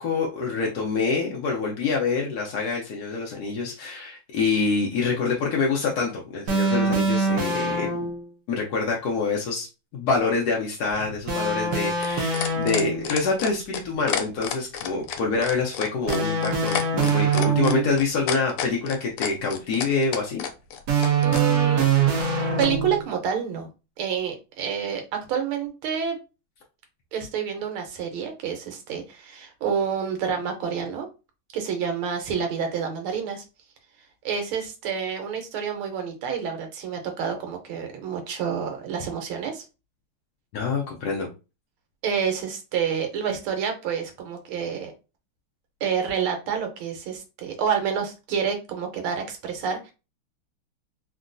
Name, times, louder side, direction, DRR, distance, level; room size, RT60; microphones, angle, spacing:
voice 1, 0.0-7.9 8.5-9.7 9.9-20.4 40.5-41.3, left 4 dB, 70° left, -2 dB, 0.9 m, -26 dB
sound 1, 6.5-8.3 11.3-13.2 16.1-18.0 20.9-23.1, right 4 dB, 65° right, 1.0 m, -23 dB
sound 2, 10.9-21.5 22.6-22.7, left 8 dB, 90° left, 1.5 m, -30 dB
voice 2, 21.2-22.1 22.6-23.7 24.0-26.2 27.1-31.1 31.5-33.4 34.2-39.6 42.0-44.9 45.8-49.9, right 7 dB, 85° right, 5 dB, 1.6 m, -28 dB
3.7 x 2.2 x 2.5 m, 0.30 s
omnidirectional pair, 2.3 m